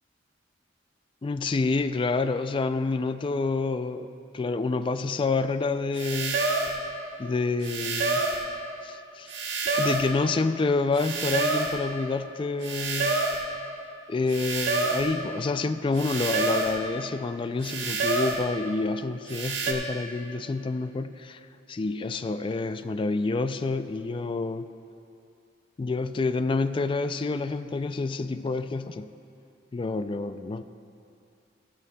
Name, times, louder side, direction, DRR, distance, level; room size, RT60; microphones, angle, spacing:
voice 1, 1.2-4.1 4.3-6.4 7.2-8.3 8.8-9.3 9.8-13.2 14.1-21.4 21.7-24.7 25.8-29.1 29.7-30.6, left 3 dB, 30° left, 10 dB, 0.3 m, -28 dB
sound 1, 6.0-6.8 7.6-8.5 9.3-10.1 11.0-11.8 12.6-13.5 14.3-15.1 16.0-16.8 17.6-18.5 19.3-19.7, right 3 dB, 75° right, 1.2 m, -27 dB
15.5 x 12.5 x 2.3 m, 2.5 s
head